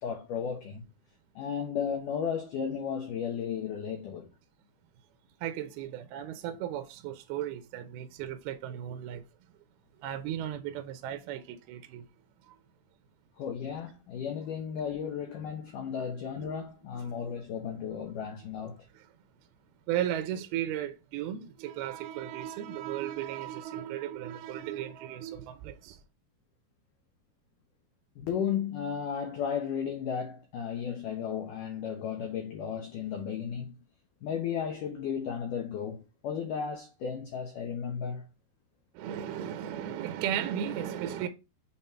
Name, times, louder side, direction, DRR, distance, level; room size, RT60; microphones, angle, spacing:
voice 1, 0.0-0.9 1.4-4.3 13.4-18.8 28.2-33.8 34.2-38.3, left 7 dB, 85° left, 1.8 m, -34 dB
voice 2, 5.4-9.2 10.0-12.1 12.5-12.6 16.4-16.7 17.0-17.3 18.9-19.1 19.9-26.0 38.9-41.3, right 11 dB, 80° right, 2.3 m, -35 dB
7.1 x 3.6 x 4.3 m
omnidirectional pair, 5.1 m